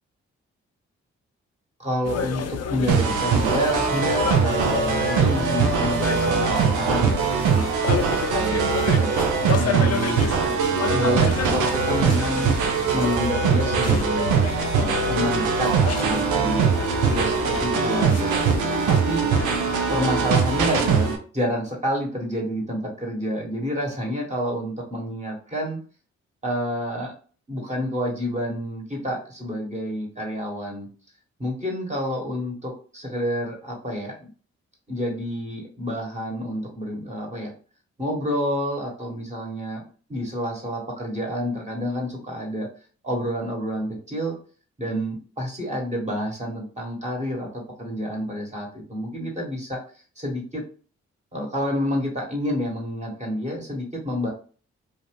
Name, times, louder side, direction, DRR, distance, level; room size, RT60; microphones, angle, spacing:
voice 1, 1.8-7.2 7.5-7.7 8.3-10.2 10.9-12.6 12.9-16.7 17.1-18.3 18.9-19.3 19.9-25.8 26.4-27.1 27.5-30.9 31.4-34.3 34.9-37.5 38.0-39.8 40.1-42.7 43.0-44.4 44.8-49.8 50.2-50.6 51.3-54.3, equal, 25° right, -2 dB, 1.4 m, -28 dB
sound 1, 2.0-21.1, left 7 dB, 60° left, 0.5 m, -31 dB
sound 2, 2.9-21.2, right 6 dB, 85° right, 0.6 m, -22 dB
2.5 x 2.4 x 3.4 m, 0.40 s
supercardioid pair, 45°, 29 cm